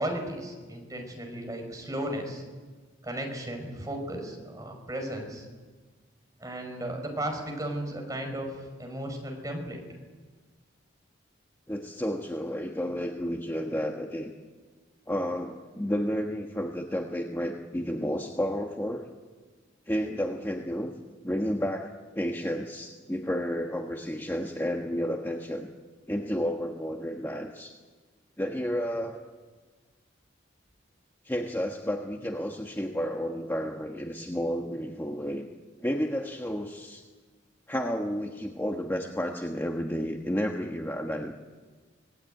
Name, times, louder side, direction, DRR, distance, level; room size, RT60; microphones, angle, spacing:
voice 1, 0.0-2.4 3.0-5.5 6.4-9.8, right 1 dB, 20° right, 2 dB, 5.6 m, -35 dB
voice 2, 11.7-14.3 15.1-19.1 19.9-20.9 21.2-25.7 26.1-27.7 28.4-29.2 31.2-35.4 35.8-37.0 37.7-41.3, equal, 10° left, 2 dB, 1.4 m, -31 dB
25.5 x 19.0 x 9.3 m, 1.4 s
head